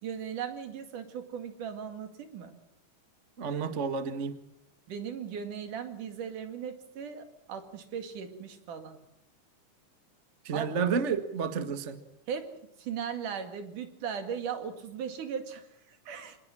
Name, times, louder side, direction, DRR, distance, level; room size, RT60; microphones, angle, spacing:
voice 1, 0.0-2.5 4.9-9.0 10.5-10.9 12.3-12.5 12.8-16.4, right 7 dB, 70° right, 8 dB, 3.7 m, -38 dB
voice 2, 3.4-4.4 10.4-12.0, right 6 dB, 35° right, 10 dB, 1.2 m, -30 dB
27.0 x 20.0 x 7.5 m, 0.75 s
omnidirectional pair, 3.8 m